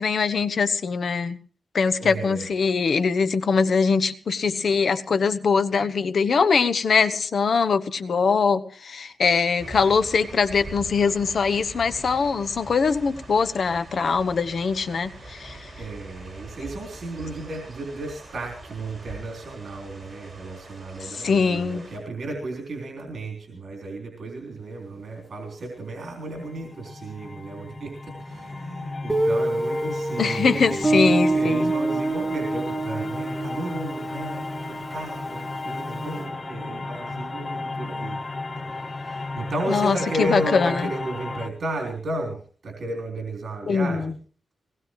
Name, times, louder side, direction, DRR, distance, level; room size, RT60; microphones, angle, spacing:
voice 1, 0.0-1.4 1.7-15.7 21.2-21.9 30.2-31.7 39.7-39.9 40.3-40.9 43.7-44.0, left 5 dB, 70° left, 11 dB, 1.1 m, -22 dB
voice 2, 2.0-2.5 15.8-38.2 38.6-44.2, right 2 dB, 70° right, 2 dB, 3.6 m, -34 dB
sound 1, 9.6-22.0, right 2 dB, 35° right, 7.7 m, -42 dB
sound 2, 26.1-41.5, left 3 dB, 35° left, 1.4 m, -34 dB
Guitar, 29.1-35.8, right 2 dB, ahead, 2.2 m, -26 dB
21.5 x 19.0 x 3.2 m, 0.41 s
wide cardioid pair, 115°, 0 cm